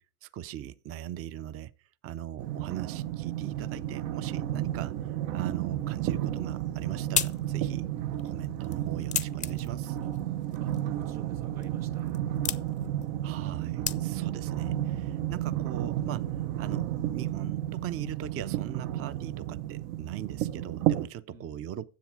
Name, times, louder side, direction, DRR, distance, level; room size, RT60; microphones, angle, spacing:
voice 1, 0.0-1.7 2.0-7.8 8.2-10.0 13.2-16.3 16.6-21.9, right 11 dB, 30° right, 0.6 m, -40 dB
sound 1, 2.4-21.1, right 12 dB, 70° right, 0.9 m, -32 dB
sound 2, 6.5-14.4, left 7 dB, 15° left, 0.5 m, -37 dB
voice 2, 10.6-12.2 21.3-21.7, right 6 dB, 85° right, 1.7 m, -51 dB
10.5 x 7.4 x 4.9 m
supercardioid pair, 105°, 44 cm